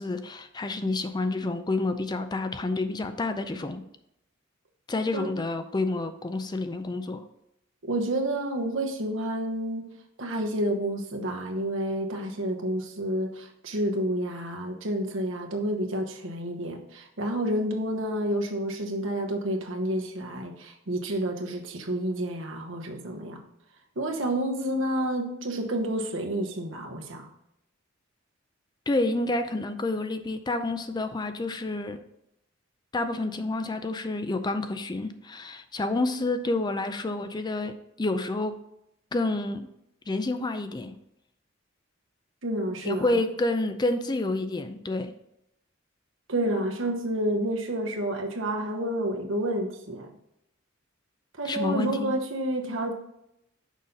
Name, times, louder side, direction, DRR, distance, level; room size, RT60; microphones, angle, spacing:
voice 1, 0.0-3.8 4.9-7.2 28.9-32.0 32.9-38.6 39.1-39.7 40.1-41.0 42.8-45.1 51.4-52.1, left 2 dB, 20° left, 9 dB, 0.4 m, -29 dB
voice 2, 7.8-9.9 10.2-23.4 24.0-27.3 42.4-43.2 46.3-50.1 51.4-52.9, right 1 dB, 70° right, 3 dB, 1.1 m, -29 dB
6.4 x 5.5 x 3.9 m, 0.81 s
head